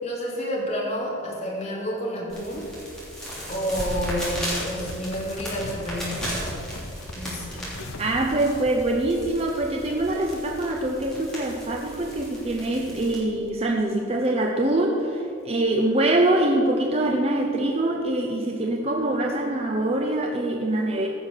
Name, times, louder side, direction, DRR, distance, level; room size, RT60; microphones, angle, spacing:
voice 1, 0.0-2.7 3.5-6.6 7.1-7.8, equal, 35° left, -4 dB, 2.6 m, -30 dB
sound 1, 2.3-13.2, equal, 5° left, 3.2 m, -36 dB
sound 2, 3.7-9.9 10.3-10.4 10.9-11.2 11.5-11.6 11.9-12.0 12.5-12.7 13.1-13.2 13.5-13.6 13.9-14.7 15.3-15.4, left 2 dB, 90° left, 1.0 m, -41 dB
voice 2, 8.0-21.1, right 1 dB, 30° right, 1 dB, 0.7 m, -24 dB
15.0 x 6.2 x 6.6 m, 2.7 s
head